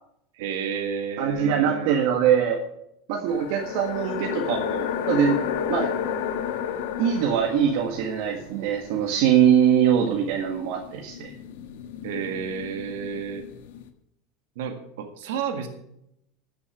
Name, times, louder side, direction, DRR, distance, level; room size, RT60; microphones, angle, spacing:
voice 1, 0.4-1.9 12.0-13.5 14.6-15.7, right 6 dB, 80° right, 6 dB, 1.8 m, -31 dB
voice 2, 1.2-2.6 3.1-5.4 5.7-5.9 7.0-11.3, right 8 dB, 65° right, 2 dB, 1.7 m, -22 dB
sound 1, 3.3-8.4 10.5-13.9, left 8 dB, 80° left, 1.3 m, -31 dB
13.5 x 7.0 x 7.1 m, 0.78 s
supercardioid pair, 145°, 0 cm